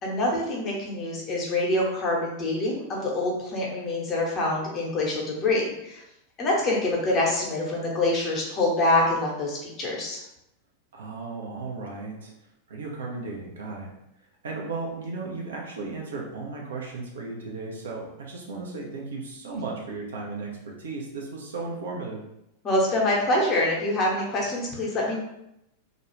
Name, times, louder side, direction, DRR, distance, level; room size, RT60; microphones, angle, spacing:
voice 1, 0.0-6.0 6.4-10.2 22.6-25.2, left 2 dB, 30° left, -3 dB, 0.8 m, -25 dB
voice 2, 10.9-12.3 12.7-13.9 14.4-22.2, right 3 dB, 65° right, -2 dB, 0.6 m, -35 dB
2.5 x 2.3 x 3.1 m, 0.84 s
figure-of-eight pair, 90°, 0 cm